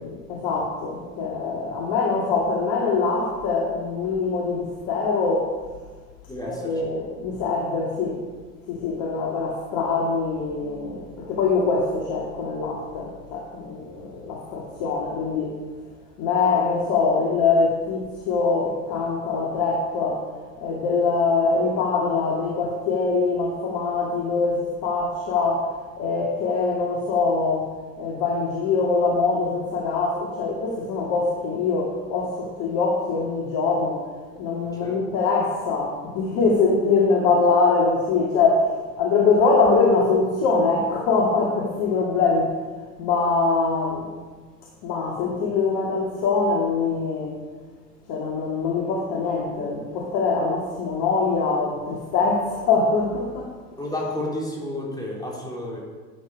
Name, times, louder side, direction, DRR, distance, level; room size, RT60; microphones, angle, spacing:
voice 1, 0.3-5.5 6.5-8.2 8.7-15.6 16.2-20.3 20.6-25.7 26.0-34.1 34.4-38.7 39.0-42.5 43.0-44.1 44.8-47.4 48.1-53.5, left 4 dB, 50° left, -2 dB, 2.4 m, -23 dB
voice 2, 6.3-6.7 34.8-35.0 53.8-55.8, left 1 dB, 10° left, -3 dB, 3.9 m, -31 dB
13.0 x 9.1 x 5.0 m, 1.4 s
hypercardioid pair, 105°, 46 cm